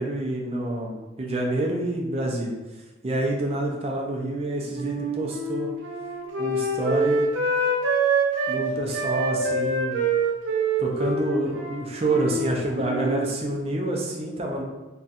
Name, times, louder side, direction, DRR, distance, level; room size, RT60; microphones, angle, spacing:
voice 1, 0.0-2.6 3.0-5.7 6.4-7.2 8.5-10.0 10.8-14.6, right 1 dB, 35° right, 0 dB, 0.4 m, -27 dB
Wind instrument woodwind instrument, 4.7-8.6 8.9-12.5 12.7-13.3, right 3 dB, 85° right, 0.5 m, -25 dB
4.0 x 2.3 x 2.5 m, 1.1 s
head